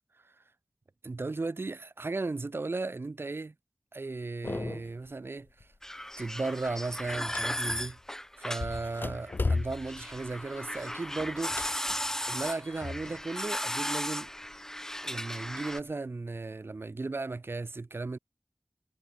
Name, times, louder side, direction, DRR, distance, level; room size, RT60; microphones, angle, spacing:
voice 1, 1.0-3.5 3.9-5.7 6.2-8.0 8.4-11.7 12.3-14.3 15.0-18.2, right 3 dB, 55° right, 0.7 m, -35 dB
sound 1, 4.4-5.1 5.5-5.8 6.2-8.1 8.6-13.3 13.6-14.6 15.1-15.9, left 3 dB, 45° left, 0.4 m, -37 dB
sound 2, 5.8-15.8, left 1 dB, 10° left, 0.7 m, -36 dB
wide cardioid pair, 70°, 5 cm